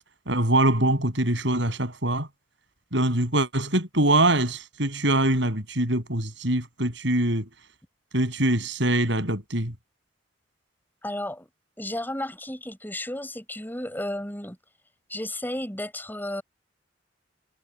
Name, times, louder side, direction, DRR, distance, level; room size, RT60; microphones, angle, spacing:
voice 1, 0.3-2.3 2.9-7.5 8.1-9.7, right 1 dB, 70° right, 7.4 m, -23 dB
voice 2, 11.0-11.5 11.8-14.6 15.1-16.4, left 1 dB, 10° left, 6.5 m, -33 dB
head